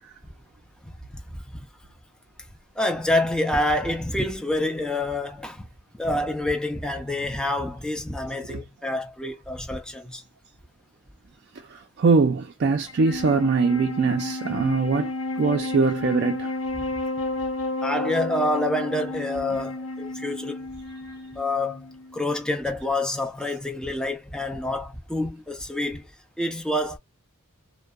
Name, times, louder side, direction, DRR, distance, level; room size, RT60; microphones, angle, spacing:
voice 1, 2.8-5.6 6.0-10.2 17.8-20.7 21.4-26.0 26.4-27.0, left 1 dB, 5° left, 0.5 m, -27 dB
voice 2, 11.7-16.5, right 4 dB, 50° right, 0.4 m, -22 dB
Wind instrument woodwind instrument, 12.9-22.4, left 2 dB, 65° left, 0.7 m, -32 dB
2.6 x 2.1 x 2.2 m
head